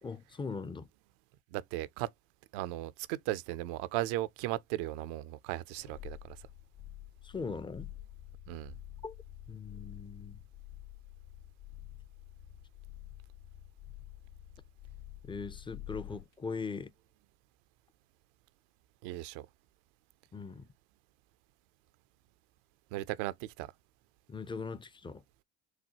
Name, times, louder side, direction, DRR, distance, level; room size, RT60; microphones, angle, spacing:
voice 1, 0.0-0.9 7.2-7.9 9.0-9.1 9.5-10.4 15.2-16.9 20.3-20.7 24.3-25.2, left 4 dB, 15° left, 0.5 m, -40 dB
voice 2, 1.5-2.1 2.5-6.4 8.5-8.7 19.0-19.5 22.9-23.7, right 15 dB, 65° right, 0.5 m, -36 dB
sound 1, 5.7-16.3 16.8-16.9, left 12 dB, 90° left, 1.9 m, -49 dB
6.3 x 2.2 x 2.8 m
hypercardioid pair, 60°, 34 cm